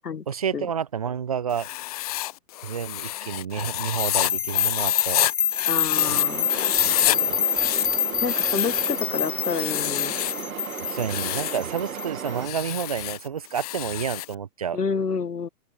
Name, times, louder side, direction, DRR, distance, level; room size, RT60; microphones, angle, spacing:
voice 1, 0.3-1.7 2.6-5.3 6.1-6.2 6.8-7.5 10.9-14.8, right 8 dB, 25° right, 0.5 m, -30 dB
Writing, 1.5-6.2 6.5-7.2 7.5-9.0 9.5-10.4 10.9-11.7 12.4-14.3, left 16 dB, 25° left, 0.8 m, -29 dB
sound 1, 3.8-12.8, left 9 dB, 55° left, 1.1 m, -26 dB
voice 2, 5.6-6.5 8.2-10.1 14.7-15.5, left 5 dB, 75° left, 1.3 m, -28 dB
sound 2, 5.9-12.5, right 8 dB, 60° right, 2.0 m, -35 dB
open air
figure-of-eight pair, 120°, 48 cm